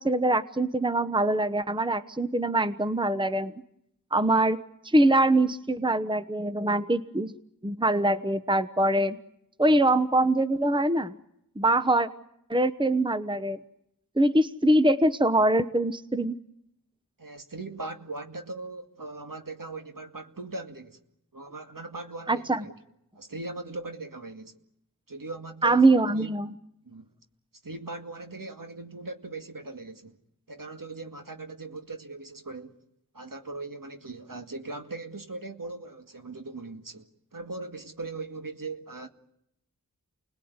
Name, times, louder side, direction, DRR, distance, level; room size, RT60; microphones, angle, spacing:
voice 1, 0.0-3.5 4.1-4.6 4.8-7.3 7.6-9.2 9.6-11.2 11.6-12.1 12.5-13.6 14.2-16.4 22.3-22.6 25.6-26.5, right 1 dB, 15° right, 1.0 m, -23 dB
voice 2, 17.2-21.0 21.3-22.7 23.1-24.6 25.1-25.9 26.1-26.3 26.8-27.1 27.6-30.2 30.5-32.8 33.1-39.1, right 3 dB, 60° right, 2.3 m, -39 dB
29.5 x 20.5 x 9.7 m
wide cardioid pair, 50°, 37 cm